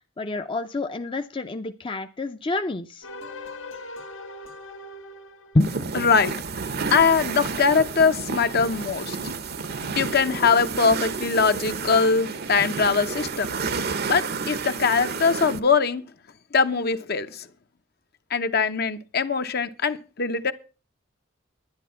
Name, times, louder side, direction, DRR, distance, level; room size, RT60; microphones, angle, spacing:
voice 1, 0.2-3.1 5.5-5.8, left 2 dB, 25° left, 0.6 m, -27 dB
sound 1, 3.0-6.3, left 2 dB, 85° left, 2.0 m, -41 dB
sound 2, 5.6-15.6, right 4 dB, 55° right, 0.8 m, -31 dB
voice 2, 5.9-6.3 6.9-9.3 10.0-13.5 14.1-16.0 16.5-17.5 18.3-20.5, left 5 dB, 55° left, 0.8 m, -22 dB
10.5 x 10.0 x 5.7 m
head